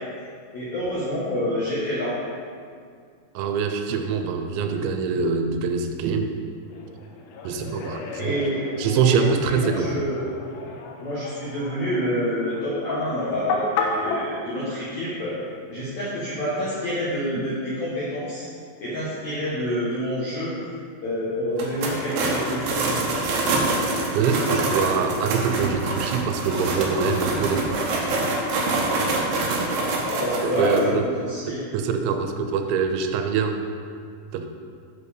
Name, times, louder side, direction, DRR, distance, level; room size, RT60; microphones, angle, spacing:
voice 1, 0.5-2.2 8.2-8.6 9.0-9.2 9.4-10.2 11.0-15.3 15.7-18.4 18.8-20.6 21.0-22.9 29.7-31.6, equal, 65° left, -9 dB, 1.9 m, -27 dB
voice 2, 3.3-6.3 7.4-8.4 8.8-10.0 24.1-27.7 30.4-31.0 31.7-33.6 34.3-34.5, right 5 dB, 85° right, 6 dB, 3.1 m, -24 dB
sound 1, 6.7-14.3, left 3 dB, 85° left, 3.2 m, -33 dB
sound 2, 21.5-30.8, right 2 dB, 70° right, 2.3 m, -25 dB
7.5 x 5.5 x 6.5 m, 2.2 s
omnidirectional pair, 5.2 m